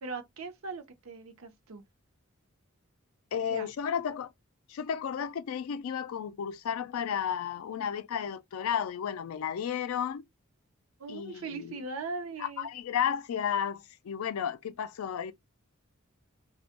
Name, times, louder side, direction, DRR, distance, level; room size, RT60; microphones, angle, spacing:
voice 1, 0.0-1.8 3.5-3.7 11.0-12.7, right 4 dB, 85° right, 0.6 m, -39 dB
voice 2, 3.3-4.3 4.7-10.2 11.1-11.8 12.4-15.3, left 8 dB, 85° left, 0.3 m, -33 dB
2.2 x 2.1 x 2.8 m
head